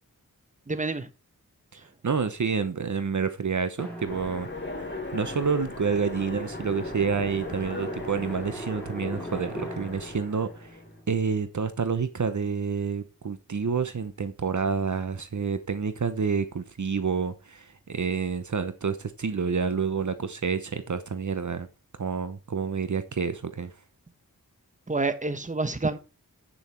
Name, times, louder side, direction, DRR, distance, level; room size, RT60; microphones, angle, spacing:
voice 1, 0.7-1.1 24.9-26.0, right 3 dB, 20° right, 1.2 m, -28 dB
voice 2, 1.7-4.5 5.1-10.8 11.1-21.7 22.0-23.7, right 5 dB, 55° right, 1.0 m, -28 dB
Drum, 3.8-12.1, equal, 5° left, 4.6 m, -40 dB
Train, 4.1-11.0, left 3 dB, 30° left, 2.8 m, -39 dB
8.9 x 7.1 x 4.4 m
wide cardioid pair, 65°, 35 cm